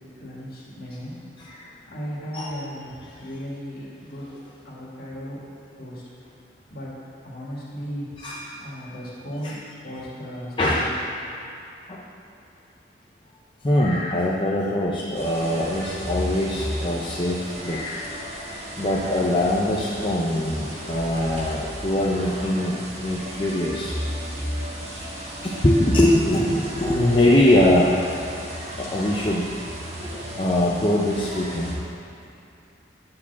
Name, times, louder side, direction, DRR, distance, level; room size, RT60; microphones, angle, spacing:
voice 1, 0.2-1.2 1.9-4.4 4.6-5.4 5.8-6.0 6.7-7.0 7.2-8.2 8.5-11.0, equal, 50° left, -6 dB, 2.2 m, -36 dB
voice 2, 1.4-1.7 2.3-2.5 3.0-3.1 8.2-8.5 9.4-9.6 10.6-10.9 11.9-12.1 13.6-18.1 18.8-23.9 24.8-25.1 25.4-28.0 28.8-29.5 30.1-31.7, left 1 dB, 25° left, -5 dB, 0.6 m, -22 dB
sound 1, 15.1-31.8, equal, 35° right, 1.5 m, -34 dB
9.6 x 4.7 x 7.0 m, 2.7 s
head